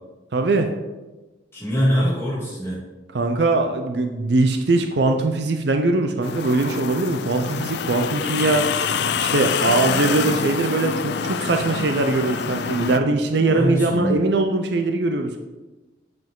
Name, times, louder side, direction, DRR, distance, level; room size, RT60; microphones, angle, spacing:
voice 1, 0.3-0.7 3.1-8.6 9.1-15.4, right 2 dB, 60° right, 5 dB, 0.5 m, -21 dB
voice 2, 1.5-2.8 13.4-14.2, equal, 15° left, -8 dB, 2.5 m, -23 dB
sound 1, 6.2-13.0, left 6 dB, 60° left, 0.4 m, -26 dB
8.0 x 5.2 x 3.7 m, 1.1 s
head